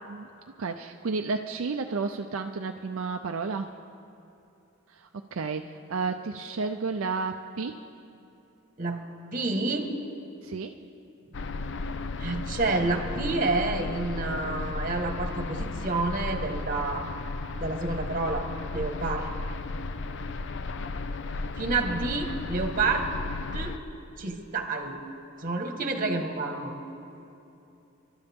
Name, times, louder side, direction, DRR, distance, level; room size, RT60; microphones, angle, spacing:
voice 1, 0.6-3.7 4.9-7.8 10.4-10.8, right 4 dB, 75° right, 5 dB, 0.5 m, -32 dB
voice 2, 9.3-9.9 12.2-17.1 17.6-19.3 21.6-23.1 23.5-23.8 24.2-25.0 25.4-26.7, right 3 dB, 40° right, 4 dB, 1.5 m, -29 dB
sound 1, 11.3-23.8, left 3 dB, 55° left, 0.5 m, -34 dB
29.5 x 12.0 x 3.6 m, 2.8 s
head